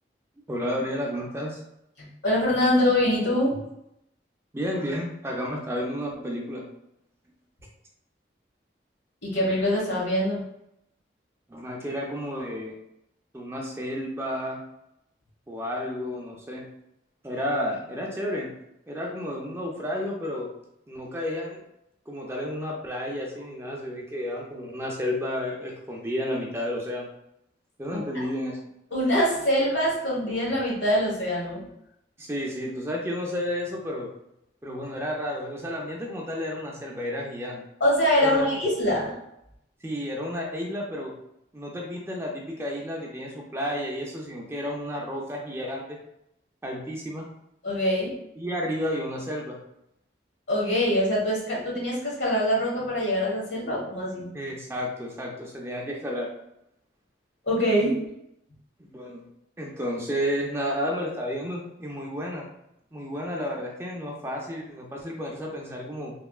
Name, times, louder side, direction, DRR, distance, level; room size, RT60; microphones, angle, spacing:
voice 1, 0.5-1.6 4.5-6.6 11.5-12.8 13.3-14.6 15.5-16.7 17.2-18.5 18.9-20.5 20.9-21.6 22.1-27.1 27.8-28.6 32.2-34.1 34.6-37.6 38.2-38.5 39.8-41.1 41.5-46.0 46.6-47.3 48.4-49.6 54.3-56.3 58.8-59.3 59.6-62.5 62.9-66.1, equal, 15° right, -1 dB, 0.4 m, -31 dB
voice 2, 2.0-3.6 9.2-10.5 27.9-28.0 28.9-31.7 37.8-39.2 47.6-48.2 50.5-54.3 57.5-58.0, equal, 75° left, -4 dB, 1.3 m, -24 dB
3.3 x 2.8 x 2.3 m, 0.81 s
head